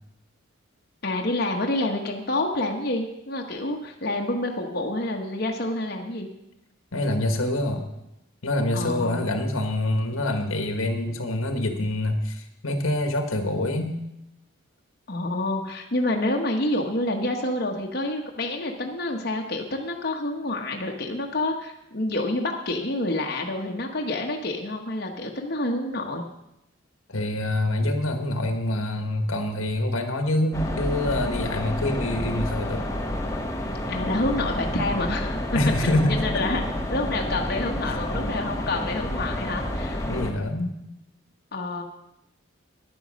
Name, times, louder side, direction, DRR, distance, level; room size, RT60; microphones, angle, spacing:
voice 1, 1.0-6.3 8.7-9.3 15.1-26.2 33.9-35.4 35.8-36.6 36.9-40.0 41.5-41.8, left 2 dB, 50° left, 1 dB, 1.2 m, -28 dB
voice 2, 6.9-7.9 8.4-14.0 27.1-32.9 35.5-36.6 40.1-40.8, left 1 dB, 90° left, 6 dB, 1.5 m, -26 dB
sound 1, 30.5-40.3, left 1 dB, 15° left, 1.1 m, -29 dB
10.5 x 9.3 x 6.4 m, 0.85 s
head